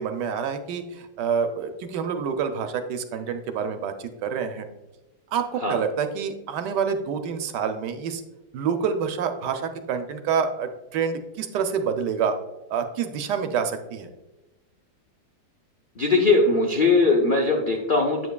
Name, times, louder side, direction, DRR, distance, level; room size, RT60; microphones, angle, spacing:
voice 1, 0.0-4.7 5.3-8.2 8.5-12.4 12.7-14.1, right 6 dB, 70° right, 7 dB, 1.1 m, -27 dB
voice 2, 16.0-18.3, left 3 dB, 90° left, 0 dB, 0.4 m, -20 dB
8.2 x 7.0 x 2.2 m, 1.0 s
omnidirectional pair, 2.1 m